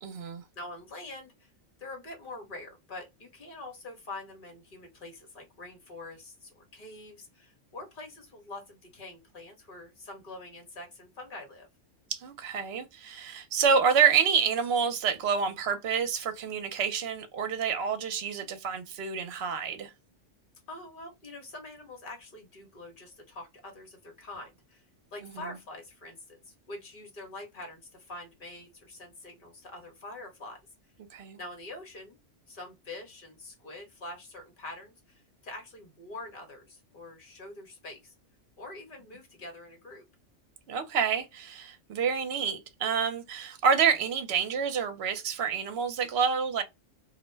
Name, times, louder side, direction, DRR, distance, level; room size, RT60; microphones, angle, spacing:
voice 1, 0.0-0.4 12.1-19.9 25.2-25.3 31.1-31.4 40.7-46.6, right 6 dB, 60° right, 0.9 m, -28 dB
voice 2, 0.5-1.5 1.8-11.7 20.7-30.6 31.4-32.2 32.5-38.1 38.6-40.1, left 2 dB, 45° left, 1.1 m, -45 dB
2.4 x 2.1 x 3.2 m
omnidirectional pair, 1.3 m